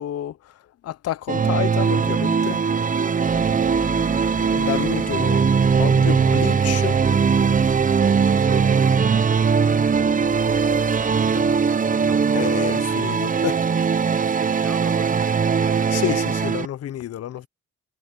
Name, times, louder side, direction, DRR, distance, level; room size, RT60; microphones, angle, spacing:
voice 1, 0.0-2.6 4.5-5.5 5.8-7.0 11.3-11.5 12.3-13.6 15.9-17.5, left 12 dB, 55° left, 0.7 m, -29 dB
sound 1, 1.3-16.7, right 6 dB, 25° right, 0.8 m, -20 dB
sound 2, 3.2-11.8, equal, 5° left, 4.8 m, -39 dB
voice 2, 4.9-5.3 8.1-12.6 12.9-13.9 14.2-15.9, right 9 dB, 60° right, 5.2 m, -39 dB
cardioid pair, 90°, 30 cm